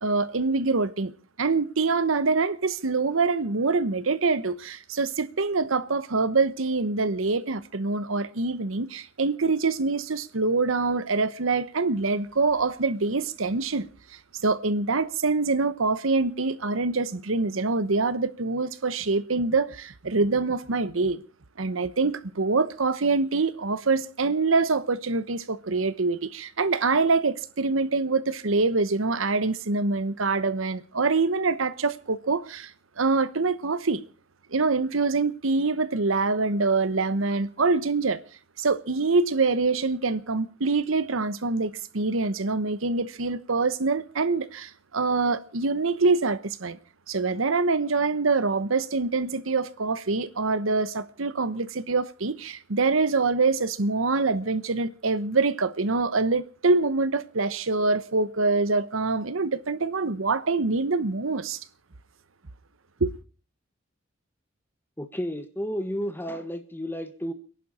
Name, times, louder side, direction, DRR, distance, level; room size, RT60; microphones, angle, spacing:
voice 1, 0.0-1.1 1.4-13.9 14.4-21.2 21.6-32.7 33.0-34.0 34.5-38.2 38.6-46.8 47.1-61.6 63.0-63.1, right 3 dB, 75° right, 1.0 m, -25 dB
voice 2, 65.0-67.3, equal, 10° left, 1.5 m, -32 dB
30.0 x 11.0 x 4.2 m
head